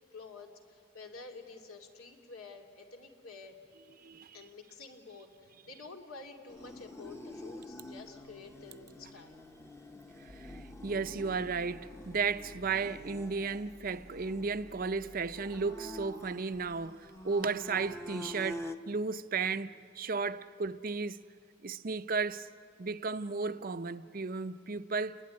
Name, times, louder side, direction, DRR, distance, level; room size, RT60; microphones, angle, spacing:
voice 1, 0.1-3.6 4.3-9.4, left 3 dB, 90° left, 2.8 m, -50 dB
voice 2, 4.0-4.4 10.3-21.2 21.6-22.5 22.8-25.2, right 4 dB, 40° right, 0.6 m, -34 dB
sound 1, 6.5-18.8, left 1 dB, 15° left, 0.8 m, -47 dB
sound 2, 10.3-17.2, equal, 65° left, 2.1 m, -55 dB
29.0 x 21.0 x 9.7 m
head